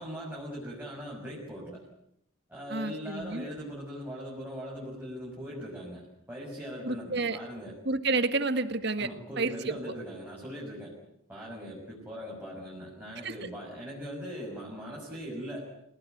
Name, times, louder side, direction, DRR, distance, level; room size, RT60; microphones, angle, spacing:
voice 1, 0.0-1.8 2.5-7.7 9.0-10.9 11.3-15.7, equal, 10° right, -5 dB, 6.5 m, -40 dB
voice 2, 2.7-3.5 6.8-7.4 7.9-9.8 13.2-13.5, right 3 dB, 55° right, 11 dB, 1.8 m, -30 dB
28.5 x 18.0 x 9.4 m, 0.76 s
head